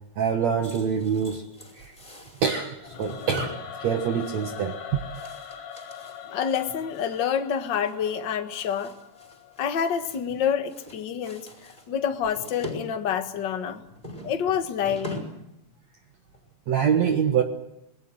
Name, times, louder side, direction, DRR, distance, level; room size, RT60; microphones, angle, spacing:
voice 1, 0.2-1.4 1.7-2.0 2.4-5.0 16.7-17.4, right 7 dB, 55° right, 5 dB, 2.3 m, -25 dB
sound 1, 0.6-7.3 7.7-8.0 8.2-10.4 10.7-12.8 13.2-15.5 15.7-15.9 16.3-16.5, equal, 10° left, 5.3 m, -42 dB
Singing / Musical instrument, 2.8-9.9, left 7 dB, 90° left, 3.8 m, -42 dB
voice 2, 6.2-8.9 9.6-11.5 11.9-13.8 14.2-15.3, left 8 dB, 45° left, 7 dB, 1.5 m, -27 dB
27.0 x 21.0 x 8.0 m, 0.84 s
omnidirectional pair, 4.3 m